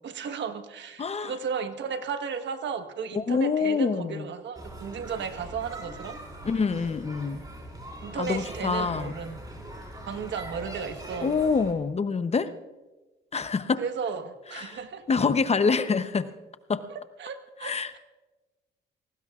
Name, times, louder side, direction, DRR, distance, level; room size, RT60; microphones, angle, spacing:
voice 1, 0.0-6.2 8.0-9.4 10.1-11.4 13.8-15.1 17.2-18.0, right 6 dB, 65° right, 7 dB, 1.4 m, -34 dB
voice 2, 1.0-1.3 3.1-4.3 6.4-7.4 8.2-9.1 11.2-12.5 13.3-13.8 14.5-14.8 15.1-16.3 16.7-16.8 17.6-18.0, left 5 dB, 30° left, 12 dB, 0.8 m, -26 dB
sound 1, 4.5-11.7, right 1 dB, 20° right, 4.6 m, -41 dB
27.0 x 19.0 x 2.5 m, 1.2 s
cardioid pair, 90°, 20 cm